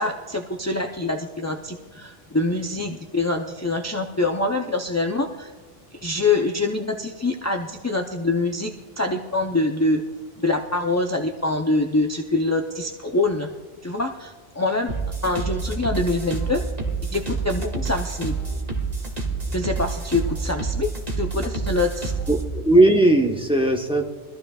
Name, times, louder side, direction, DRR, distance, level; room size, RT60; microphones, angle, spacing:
voice 1, 0.0-5.5 5.9-10.0 10.4-13.5 13.8-14.9 15.2-16.6 17.1-18.4 19.5-20.9 21.2-22.1, left 2 dB, 20° left, 2 dB, 0.4 m, -25 dB
sound 1, 14.9-22.5, right 4 dB, 30° right, 2.3 m, -28 dB
voice 2, 22.3-24.0, right 1 dB, 5° right, 1 dB, 0.9 m, -18 dB
23.5 x 14.5 x 2.4 m, 1.3 s
omnidirectional pair, 1.3 m